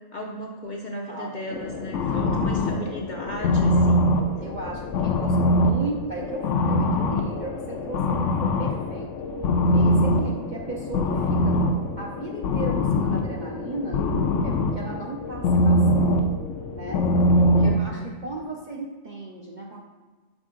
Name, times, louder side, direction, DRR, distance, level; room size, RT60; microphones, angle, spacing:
voice 1, 0.1-4.2 17.6-18.1, equal, 50° left, -1 dB, 0.5 m, -35 dB
voice 2, 1.1-1.6 2.1-2.6 4.4-9.1 9.7-11.6 12.0-14.1 14.4-16.4 16.7-17.1 17.4-19.8, right 2 dB, 55° right, -2 dB, 0.5 m, -36 dB
sound 1, 1.5-17.8, left 1 dB, 70° left, 0.9 m, -23 dB
6.2 x 4.5 x 3.7 m, 1.3 s
omnidirectional pair, 1.4 m